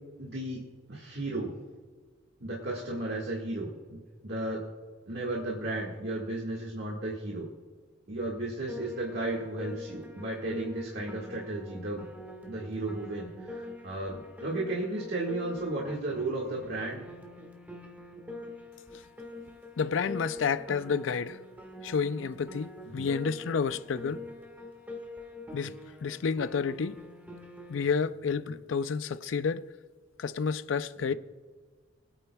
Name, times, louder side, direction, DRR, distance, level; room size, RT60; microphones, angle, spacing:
voice 1, 0.2-1.5 2.4-4.6 5.1-7.5 8.1-12.1 12.5-17.0 22.9-23.1, right 2 dB, 60° right, 1.7 m, -34 dB
Piano, 8.7-27.9, left 2 dB, 10° right, 1.6 m, -45 dB
voice 2, 19.8-21.4 21.8-24.2 25.5-25.7 26.0-27.0 27.7-29.7 30.2-31.1, left 5 dB, 80° left, 0.4 m, -30 dB
24.0 x 8.9 x 2.3 m
head